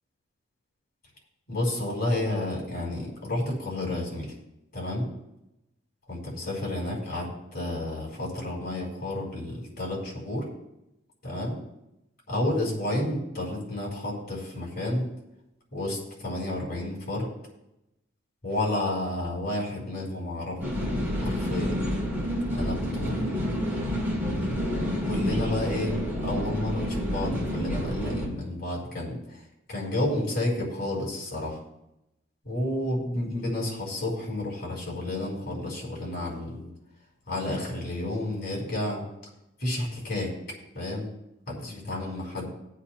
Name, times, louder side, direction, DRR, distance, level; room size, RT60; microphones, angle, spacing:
voice 1, 1.5-4.3 4.7-5.1 6.1-10.5 11.2-11.6 12.3-15.1 15.7-17.3 18.4-20.6 21.2-21.8 22.5-23.2 24.4-25.9 26.2-29.4 29.7-31.6 32.4-36.7 37.3-39.0 39.6-40.3 40.7-41.1 41.5-42.5, left 1 dB, 50° left, -3 dB, 4.4 m, -31 dB
sound 1, 20.6-28.3, equal, 10° right, 4.1 m, -29 dB
21.5 x 8.4 x 2.2 m, 0.89 s
head